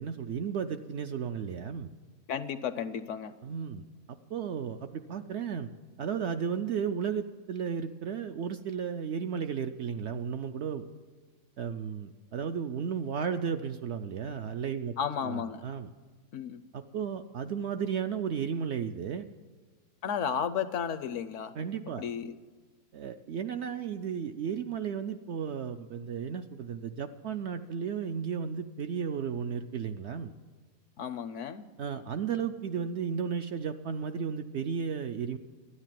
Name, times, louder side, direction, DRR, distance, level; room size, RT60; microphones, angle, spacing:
voice 1, 0.0-1.9 3.4-5.7 6.0-10.9 11.6-14.9 15.2-15.9 16.7-19.3 21.6-22.0 22.9-30.3 31.8-35.4, right 7 dB, 65° right, 7 dB, 0.7 m, -34 dB
voice 2, 2.3-3.3 15.0-15.6 16.3-16.6 20.0-21.5 22.0-22.4 31.0-31.7, left 8 dB, 65° left, 12 dB, 0.8 m, -33 dB
13.0 x 10.0 x 7.5 m, 1.4 s
omnidirectional pair, 1.5 m